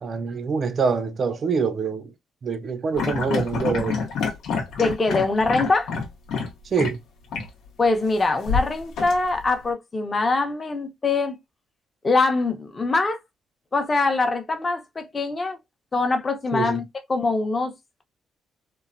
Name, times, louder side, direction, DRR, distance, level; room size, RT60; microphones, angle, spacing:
voice 1, 0.0-2.1 2.4-4.0 6.6-7.0 16.5-16.8, right 5 dB, 50° right, 0.3 m, -25 dB
sound 1, 2.9-6.5 6.8-6.9 7.3-7.5 8.5-9.6, left 5 dB, 80° left, 0.8 m, -27 dB
voice 2, 4.8-5.9 7.8-11.4 12.0-13.2 13.7-15.6 15.9-16.8 17.1-17.7, left 3 dB, 30° left, 0.7 m, -23 dB
3.0 x 2.1 x 2.5 m
cardioid pair, 90°, 0 cm